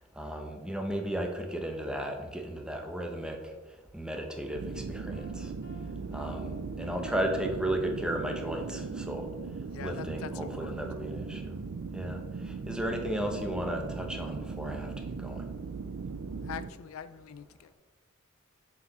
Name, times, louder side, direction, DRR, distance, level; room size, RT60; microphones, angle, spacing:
voice 1, 0.1-5.5 6.1-9.2 9.8-11.6 11.9-14.9 15.2-15.5, right 1 dB, 5° right, 0.9 m, -35 dB
sound 1, 4.5-16.7, right 4 dB, 85° right, 0.5 m, -38 dB
Piano, 5.1-7.7, left 3 dB, 55° left, 1.1 m, -58 dB
voice 2, 9.7-10.9 16.4-17.7, left 8 dB, 80° left, 0.4 m, -43 dB
6.9 x 4.9 x 5.5 m
head